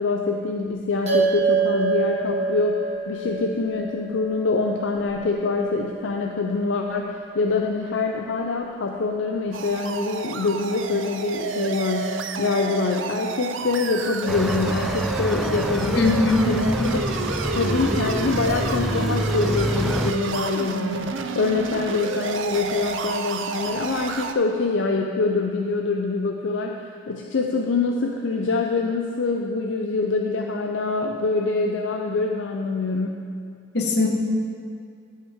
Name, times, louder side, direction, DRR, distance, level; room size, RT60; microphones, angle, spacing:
voice 1, 0.0-16.1 16.4-16.6 16.9-17.0 17.5-33.2, left 3 dB, 80° left, 2 dB, 0.5 m, -25 dB
sound 1, 1.1-5.7, right 5 dB, 35° right, 1.9 m, -26 dB
sound 2, 9.5-24.3, right 4 dB, 85° right, 0.6 m, -30 dB
sound 3, 14.3-20.1, equal, ahead, 0.3 m, -27 dB
voice 2, 15.9-16.9 33.7-34.1, left 2 dB, 60° left, 1 dB, 1.1 m, -21 dB
11.0 x 8.0 x 3.5 m, 2.2 s
head